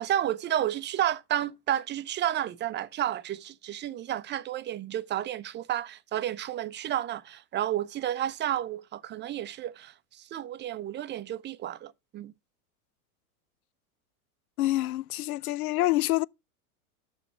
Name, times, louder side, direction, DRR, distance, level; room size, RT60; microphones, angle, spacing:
voice 1, 0.0-12.3, right 11 dB, 25° right, 0.6 m, -31 dB
voice 2, 14.6-16.2, left 17 dB, 75° left, 0.5 m, -26 dB
6.8 x 6.1 x 6.1 m
hypercardioid pair, 95°, 44 cm